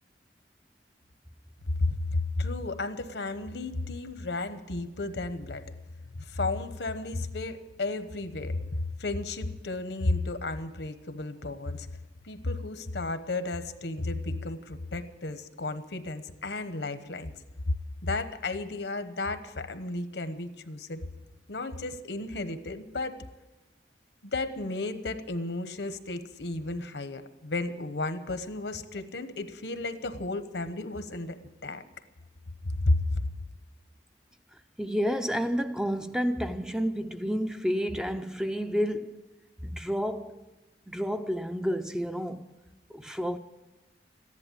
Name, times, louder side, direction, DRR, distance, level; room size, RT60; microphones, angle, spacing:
voice 1, 1.8-5.7 6.2-11.9 12.2-17.3 18.0-21.0 21.5-23.2 24.2-31.8 32.6-33.2, left 2 dB, 80° left, 1.1 m, -33 dB
voice 2, 34.8-39.2 39.6-40.4 40.9-42.5 42.9-43.4, equal, 5° right, 0.4 m, -30 dB
14.5 x 11.0 x 8.6 m
head